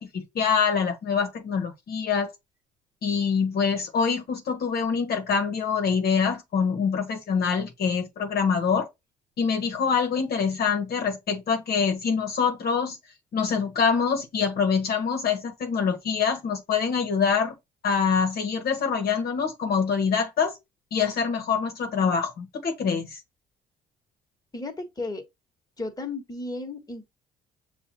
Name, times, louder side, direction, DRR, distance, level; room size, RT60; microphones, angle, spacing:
voice 1, 0.0-2.3 3.0-8.9 9.4-13.0 13.3-17.5 17.8-20.6 20.9-23.2, left 6 dB, 55° left, 1.2 m, -25 dB
voice 2, 24.5-25.2 25.8-27.1, left 2 dB, 20° left, 1.5 m, -34 dB
6.9 x 2.5 x 2.8 m
hypercardioid pair, 55°, 19 cm